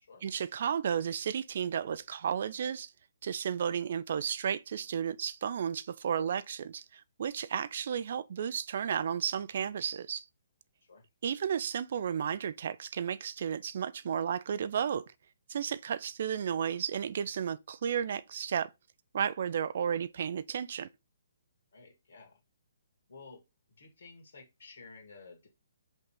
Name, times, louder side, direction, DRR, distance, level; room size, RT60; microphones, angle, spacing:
voice 1, 0.2-2.9 3.2-10.2 11.2-15.0 15.5-18.7 19.1-20.9, right 8 dB, 50° right, 0.4 m, -33 dB
voice 2, 21.7-22.4 23.1-23.4 23.8-25.5, left 4 dB, 55° left, 2.3 m, -53 dB
5.4 x 3.5 x 5.3 m
figure-of-eight pair, 130°, 0 cm